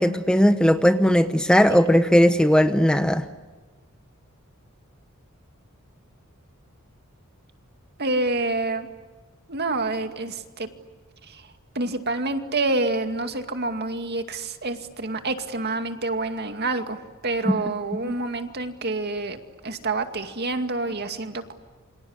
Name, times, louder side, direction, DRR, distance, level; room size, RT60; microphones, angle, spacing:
voice 1, 0.0-3.3 17.5-17.6 18.0-18.2, equal, 5° left, 9 dB, 0.9 m, -18 dB
voice 2, 8.0-8.9 9.5-10.7 11.2-11.5 11.7-17.0 17.2-19.4 19.6-21.5, right 2 dB, 50° right, 7 dB, 2.3 m, -27 dB
28.5 x 26.0 x 8.1 m, 1.4 s
head